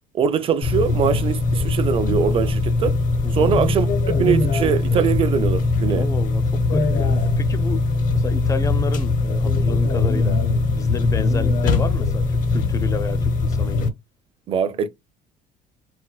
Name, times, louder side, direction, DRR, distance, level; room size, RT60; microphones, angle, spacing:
voice 1, 0.1-3.0 3.3-6.1 14.5-14.9, right 7 dB, 35° right, 0.5 m, -22 dB
sound 1, 0.6-13.9, left 3 dB, 60° left, 0.8 m, -21 dB
voice 2, 5.9-7.8 8.1-10.4 10.7-13.9, left 4 dB, 20° left, 0.4 m, -30 dB
4.3 x 2.1 x 2.3 m
cardioid pair, 135°, 16 cm